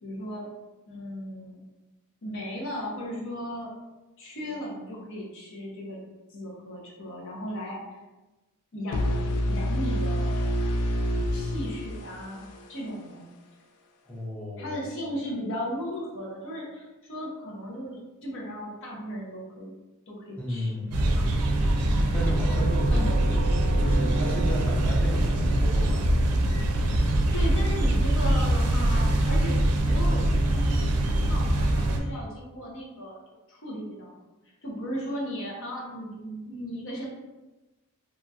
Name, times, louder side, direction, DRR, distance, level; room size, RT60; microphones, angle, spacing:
voice 1, 0.0-0.5 0.9-1.6 2.2-3.7 4.2-6.0 6.3-7.8 8.7-10.3 11.3-12.4 12.7-13.3 14.6-19.7 20.1-20.7 21.9-22.2 22.9-23.1 27.0-33.2 33.5-34.1 34.6-37.1, equal, 60° left, -3 dB, 0.8 m, -36 dB
sound 1, 8.9-12.8, equal, 85° left, 0.4 m, -27 dB
voice 2, 14.1-14.9 20.4-21.0 22.1-23.3 23.8-26.3, equal, 5° left, -4 dB, 0.6 m, -33 dB
sound 2, 20.9-32.0, right 1 dB, 90° right, 0.4 m, -23 dB
Doorbell, 22.5-31.3, right 3 dB, 30° left, 1.3 m, -41 dB
2.9 x 2.7 x 2.3 m, 1.1 s
head